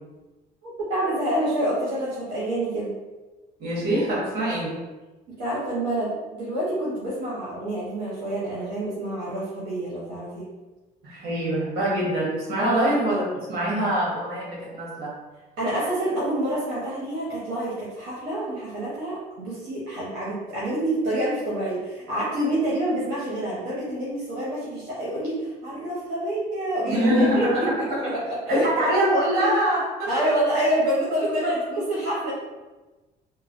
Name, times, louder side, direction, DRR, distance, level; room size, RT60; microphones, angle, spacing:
voice 1, 0.6-2.9 5.3-10.5 12.6-12.9 15.6-27.8 28.1-28.9 30.1-32.3, right 1 dB, 90° right, -9 dB, 0.9 m, -27 dB
voice 2, 3.6-4.7 11.0-15.1 26.9-28.2 28.5-30.1 31.4-31.5, right 1 dB, 65° right, -5 dB, 1.3 m, -24 dB
3.0 x 2.2 x 2.5 m, 1.2 s
cardioid pair, 110°, 17 cm